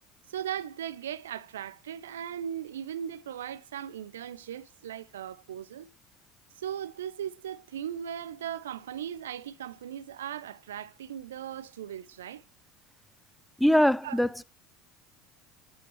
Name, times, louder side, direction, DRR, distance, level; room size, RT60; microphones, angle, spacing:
voice 1, 0.3-5.9 6.6-12.4 14.0-14.4, right 9 dB, 80° right, 0.3 m, -38 dB
voice 2, 13.6-14.4, equal, ahead, 0.3 m, -22 dB
7.7 x 6.7 x 3.1 m
hypercardioid pair, 70°, 0 cm